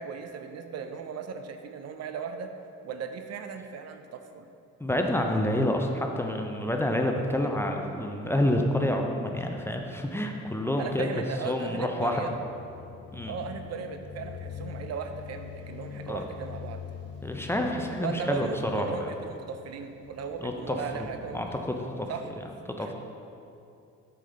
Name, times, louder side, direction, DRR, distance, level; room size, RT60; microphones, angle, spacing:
voice 1, 0.0-2.5 2.8-4.5 10.8-12.3 13.3-16.8 18.0-21.5 22.1-22.3 22.8-22.9, right 6 dB, 60° right, 7 dB, 0.5 m, -37 dB
voice 2, 4.8-11.1 11.4-12.2 13.1-13.3 16.1-16.2 17.2-19.1 20.4-21.1 21.3-22.1 22.7-22.9, left 1 dB, 10° left, 2 dB, 0.5 m, -28 dB
sound 1, 12.4-22.2, left 7 dB, 55° left, 0.6 m, -44 dB
7.1 x 5.6 x 3.3 m, 2.7 s
cardioid pair, 90°, 30 cm